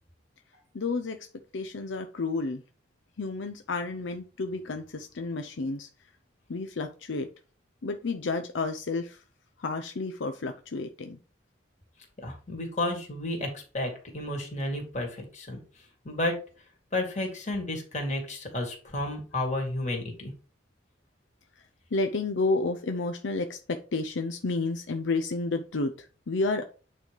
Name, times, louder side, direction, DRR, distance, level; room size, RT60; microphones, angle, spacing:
voice 1, 0.7-1.2 1.5-2.6 3.2-5.9 6.5-7.3 7.8-9.2 9.6-11.2 21.9-26.6, left 3 dB, 75° left, 0.6 m, -31 dB
voice 2, 12.2-15.6 16.0-16.3 16.9-20.3, left 1 dB, 40° left, 2.4 m, -32 dB
8.8 x 3.3 x 5.2 m
head